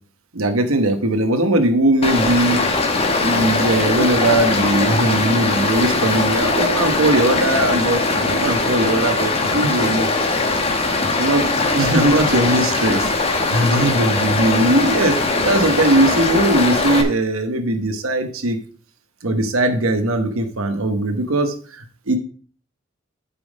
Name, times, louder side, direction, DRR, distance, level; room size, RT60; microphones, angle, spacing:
voice 1, 0.3-2.7 3.2-10.1 10.9-11.4 11.7-18.6 19.2-22.2, right 1 dB, 85° right, 7 dB, 1.1 m, -19 dB
Stream, 2.0-17.0, left 3 dB, 30° left, 1.1 m, -20 dB
8.8 x 5.3 x 5.2 m, 0.42 s
head